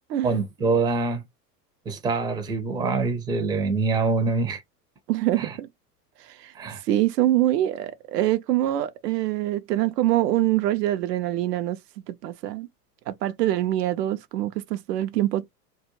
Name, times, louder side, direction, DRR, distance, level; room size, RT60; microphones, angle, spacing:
voice 1, 0.2-1.2 1.9-4.6 5.4-5.6 6.5-6.8, right 4 dB, 10° right, 0.5 m, -25 dB
voice 2, 5.1-5.7 6.3-6.5 6.9-11.8 12.1-12.7 13.1-15.5, right 14 dB, 75° right, 0.6 m, -24 dB
2.3 x 2.1 x 2.8 m
hypercardioid pair, 95°, 49 cm